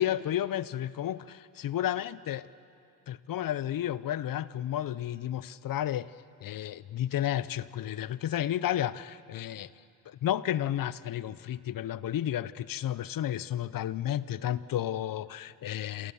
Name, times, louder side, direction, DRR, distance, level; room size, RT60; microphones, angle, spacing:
voice 1, 0.0-2.5 3.1-6.1 6.4-9.7 10.1-16.1, left 11 dB, 60° left, 18 dB, 0.8 m, -32 dB
28.0 x 26.5 x 7.1 m, 2.6 s
supercardioid pair, 60°, 39 cm